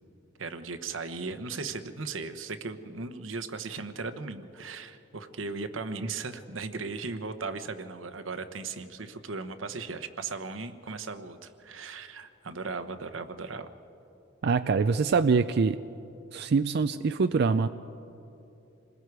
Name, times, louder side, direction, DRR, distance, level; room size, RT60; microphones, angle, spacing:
voice 1, 0.4-13.7, right 4 dB, 90° right, 9 dB, 1.0 m, -37 dB
voice 2, 14.4-15.8 16.3-17.7, right 4 dB, 55° right, 10 dB, 0.4 m, -24 dB
27.5 x 20.5 x 4.8 m, 2.8 s
head